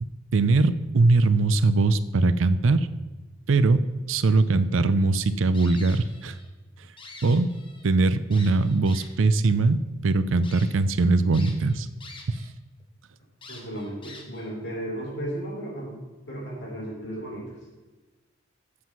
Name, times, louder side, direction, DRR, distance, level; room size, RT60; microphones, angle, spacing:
voice 1, 0.0-2.9 3.5-6.4 7.2-7.5 7.8-11.9 12.3-12.4, right 3 dB, 85° right, 14 dB, 0.5 m, -21 dB
sound 1, 5.5-6.5 6.8-7.9 8.3-9.3 9.9-10.0 10.4-10.7 11.3-12.5 12.8-12.9 13.4-14.5, left 3 dB, 25° left, 1.3 m, -45 dB
voice 2, 13.5-16.0 16.3-17.5, right 1 dB, 65° left, -3 dB, 3.6 m, -34 dB
8.4 x 7.5 x 5.9 m, 1.2 s
head